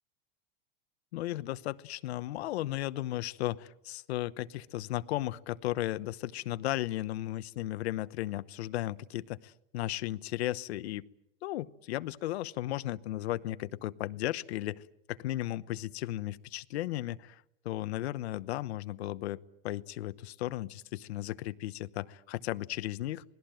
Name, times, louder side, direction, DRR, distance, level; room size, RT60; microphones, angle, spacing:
voice 1, 1.1-11.1 11.4-14.8 15.1-23.2, left 15 dB, 85° left, 15 dB, 1.0 m, -35 dB
27.0 x 19.5 x 9.0 m, 0.82 s
supercardioid pair, 145°, 32 cm